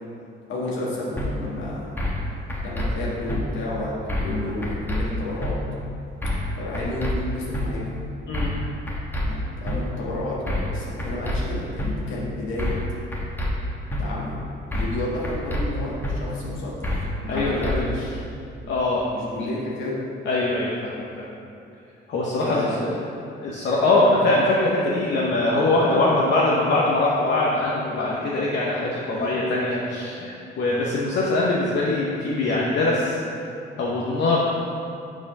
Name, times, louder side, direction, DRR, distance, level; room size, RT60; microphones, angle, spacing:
voice 1, 0.5-1.9 2.6-5.5 6.6-7.8 9.2-12.7 14.0-14.3 14.7-16.7 17.2-18.2 19.1-20.0 22.4-22.9 29.0-29.4, left 1 dB, 80° left, -6 dB, 1.5 m, -31 dB
sound 1, 1.2-1.3 2.0-2.2 2.5-2.9 3.3-3.4 4.1-4.4 4.6-5.0 5.4-5.5 6.2-6.5 6.7-7.1 7.5-7.7 8.3-8.6 8.9-9.2 9.6-9.8 10.5-10.7 11.0-11.4 11.8-11.9 12.6-12.9 13.1-13.5 13.9-14.0 14.7-15.0 15.2-15.6 16.0-16.1 16.8-17.1 17.4-17.7, left 1 dB, 10° left, 1.2 m, -27 dB
voice 2, 17.3-17.8 18.7-19.0 20.2-21.0 22.1-22.7 23.4-33.2 33.8-34.5, left 2 dB, 60° left, -5 dB, 0.9 m, -22 dB
6.2 x 4.2 x 5.4 m, 2.6 s
cardioid pair, 90°, 20 cm